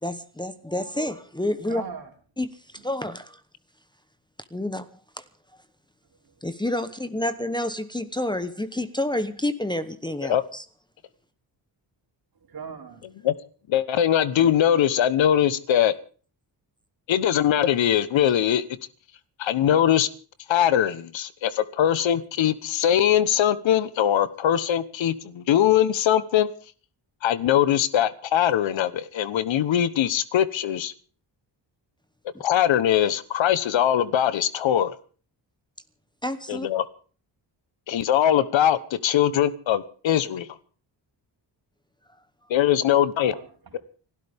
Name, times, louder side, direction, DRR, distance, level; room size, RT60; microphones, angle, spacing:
voice 1, 0.0-1.8 2.4-3.4 4.5-4.9 5.2-5.3 6.4-10.6 36.2-36.7, left 1 dB, 10° left, 11 dB, 1.0 m, -29 dB
voice 2, 1.7-2.1 2.8-2.9 6.2-6.3 12.3-13.3 42.8-43.8, right 6 dB, 55° right, 3 dB, 3.3 m, -41 dB
voice 3, 13.7-15.9 17.1-18.6 19.4-20.1 20.5-26.5 27.2-30.9 32.4-34.9 36.5-36.8 37.9-40.5 42.5-43.3, left 10 dB, 90° left, 15 dB, 1.2 m, -21 dB
30.0 x 12.5 x 3.6 m, 0.41 s
wide cardioid pair, 120°, 44 cm